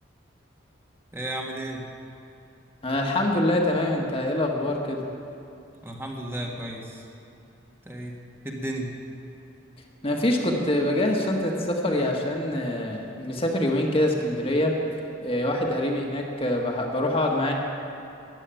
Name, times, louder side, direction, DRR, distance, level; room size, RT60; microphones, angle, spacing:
voice 1, 1.1-1.8 5.8-7.0 7.8-8.1 8.4-8.9, right 1 dB, 10° right, -1 dB, 1.6 m, -33 dB
voice 2, 2.8-5.0 10.0-14.8 15.2-17.5, left 1 dB, 30° left, 0 dB, 1.5 m, -25 dB
14.0 x 10.5 x 9.0 m, 2.8 s
head